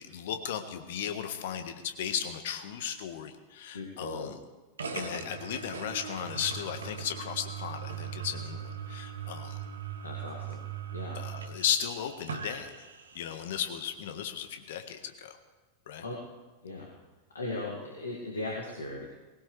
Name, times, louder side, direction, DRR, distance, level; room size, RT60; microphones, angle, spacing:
voice 1, 0.0-4.4 4.9-9.6 11.1-12.7 13.1-15.4 15.9-16.0, left 9 dB, 55° left, 8 dB, 1.4 m, -35 dB
voice 2, 3.7-4.3 4.9-5.2 10.0-10.6 10.9-11.2 16.0-16.1 16.6-16.9 17.3-19.0, left 2 dB, 70° left, -3 dB, 2.3 m, -38 dB
sound 1, 4.8-13.5, right 7 dB, 70° right, 1.2 m, -40 dB
20.0 x 18.0 x 3.4 m, 1.2 s
figure-of-eight pair, 90°, 0 cm